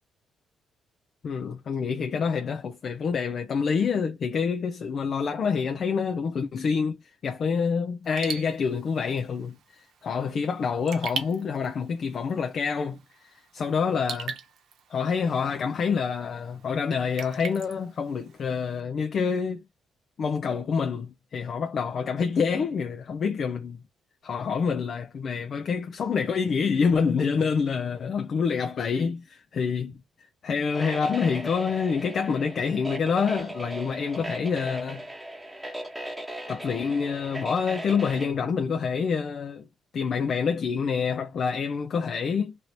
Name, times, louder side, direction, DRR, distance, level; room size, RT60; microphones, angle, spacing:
voice 1, 1.2-7.0 7.2-13.0 13.5-14.4 14.9-19.6 20.2-23.8 24.2-29.9 30.4-35.0 36.5-39.6 39.9-42.6, left 6 dB, 55° left, 0.4 m, -27 dB
Raindrop / Drip, 8.0-18.8, right 7 dB, 70° right, 0.8 m, -42 dB
sound 1, 30.7-38.3, right 1 dB, 5° right, 0.9 m, -38 dB
2.8 x 2.7 x 3.1 m
cardioid pair, 90°, 0 cm